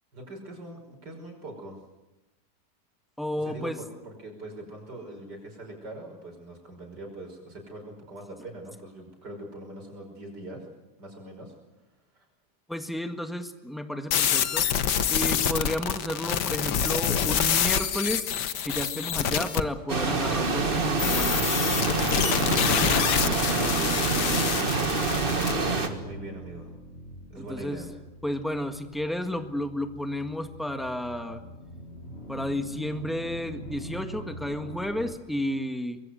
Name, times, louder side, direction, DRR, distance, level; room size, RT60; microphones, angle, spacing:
voice 1, 0.1-1.8 3.4-10.7 11.0-11.5 12.1-12.2 25.2-26.7 27.3-27.9, right 1 dB, 90° right, 2 dB, 6.2 m, -42 dB
voice 2, 3.2-3.8 12.7-14.7 15.1-18.3 18.6-21.4 22.1-24.5 27.4-27.8 28.2-31.4 32.3-36.0, left 1 dB, ahead, 7 dB, 1.5 m, -32 dB
sound 1, 14.1-19.6 21.0-25.5, left 8 dB, 85° left, 1.7 m, -26 dB
sound 2, 19.9-25.9, right 3 dB, 35° right, 1.9 m, -26 dB
sound 3, 21.5-35.2, right 1 dB, 35° left, 6.4 m, -43 dB
24.5 x 22.5 x 7.9 m, 1.0 s
omnidirectional pair, 1.8 m